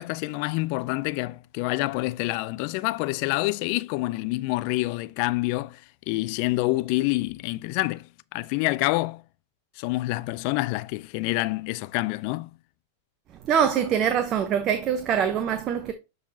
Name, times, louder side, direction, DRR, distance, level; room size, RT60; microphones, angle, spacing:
voice 1, 0.0-5.8 6.1-9.2 9.8-12.5, left 20 dB, 55° left, 0.3 m, -27 dB
voice 2, 13.5-15.9, right 8 dB, 40° right, 0.8 m, -24 dB
9.0 x 3.9 x 2.7 m
hypercardioid pair, 105°, 0 cm